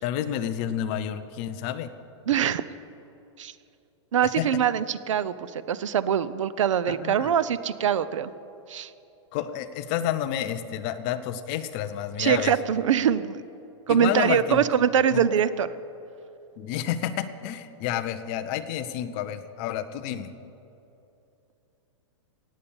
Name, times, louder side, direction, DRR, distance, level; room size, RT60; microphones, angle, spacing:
voice 1, 0.0-1.9 4.2-4.5 6.9-7.3 9.3-12.6 13.9-14.7 15.1-15.2 16.6-20.3, left 10 dB, 20° left, 10 dB, 0.4 m, -30 dB
voice 2, 2.3-2.6 3.4-3.5 4.1-8.3 8.7-8.9 12.2-13.4 13.9-15.7, right 8 dB, 80° right, 15 dB, 0.7 m, -23 dB
18.0 x 8.5 x 7.1 m, 2.8 s
supercardioid pair, 180°, 16 cm